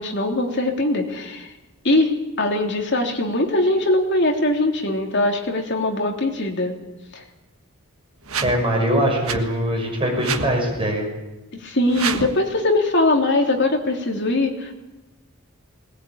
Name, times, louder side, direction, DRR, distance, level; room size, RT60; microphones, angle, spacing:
voice 1, 0.0-1.5 1.8-2.1 2.4-6.8 7.1-7.2 11.5-14.7, left 2 dB, 55° left, 2 dB, 3.2 m, -21 dB
sound 1, 8.2-8.6 9.2-9.4 10.2-10.5 11.9-12.4, right 6 dB, 85° right, 1.5 m, -27 dB
voice 2, 8.4-11.1, equal, 25° right, 0 dB, 6.4 m, -22 dB
20.0 x 20.0 x 8.8 m, 1.1 s
head